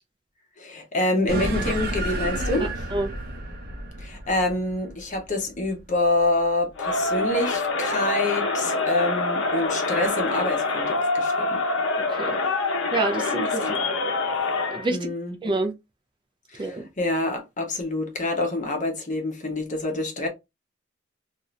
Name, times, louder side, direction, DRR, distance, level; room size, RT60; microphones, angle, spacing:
voice 1, 0.6-2.7 4.0-11.6 13.6-13.7 14.9-15.3 16.5-20.3, left 2 dB, 40° left, 0.9 m, -26 dB
sound 1, 1.3-6.1, right 1 dB, 50° right, 0.8 m, -31 dB
Crowd, 6.8-14.9, left 3 dB, 65° left, 0.7 m, -25 dB
voice 2, 12.9-13.8 14.7-15.0 15.4-15.7 16.6-16.8, right 2 dB, 25° right, 0.4 m, -27 dB
2.7 x 2.5 x 3.1 m
head